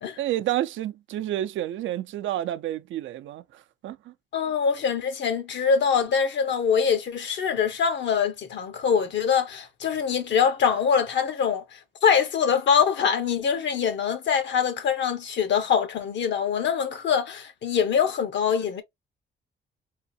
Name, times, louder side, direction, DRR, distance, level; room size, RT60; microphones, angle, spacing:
voice 1, 0.2-4.1, right 13 dB, 75° right, 0.6 m, -30 dB
voice 2, 4.3-11.6 12.0-18.8, left 7 dB, 65° left, 1.0 m, -24 dB
3.7 x 2.3 x 2.6 m
cardioid pair, 90°, 20 cm